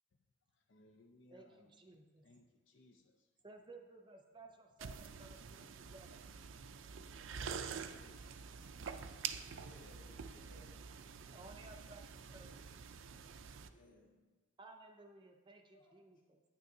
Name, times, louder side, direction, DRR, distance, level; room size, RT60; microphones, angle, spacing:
voice 1, 0.5-1.8 2.2-3.4 7.7-9.5, left 2 dB, 65° left, 3 dB, 0.5 m, -67 dB
voice 2, 1.3-2.2 3.4-6.2 11.3-12.6 14.6-16.4, right 2 dB, 25° right, 3 dB, 0.5 m, -57 dB
sound 1, 4.8-13.7, right 6 dB, 75° right, 0.4 m, -47 dB
voice 3, 9.5-10.9 13.7-14.4 15.7-16.1, left 1 dB, 45° left, -2 dB, 1.8 m, -64 dB
9.3 x 9.3 x 2.7 m, 1.3 s
head